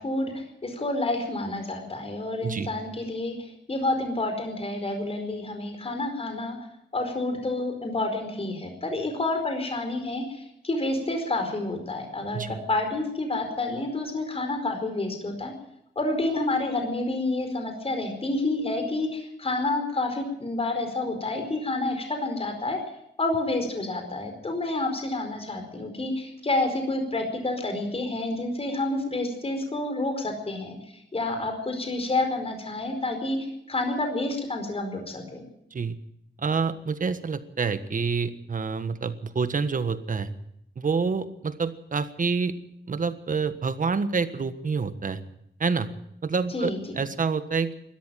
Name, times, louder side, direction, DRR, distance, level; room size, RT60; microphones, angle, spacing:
voice 1, 0.0-6.6 6.9-15.5 15.9-22.8 23.2-30.8 31.1-33.4 33.7-35.4 46.5-47.0, left 2 dB, 30° left, 5 dB, 4.7 m, -29 dB
voice 2, 36.4-40.3 40.8-42.5 42.9-45.2 45.6-45.9 46.2-47.7, right 5 dB, 45° right, 11 dB, 1.5 m, -27 dB
21.0 x 13.5 x 9.2 m, 0.77 s
wide cardioid pair, 145°, 19 cm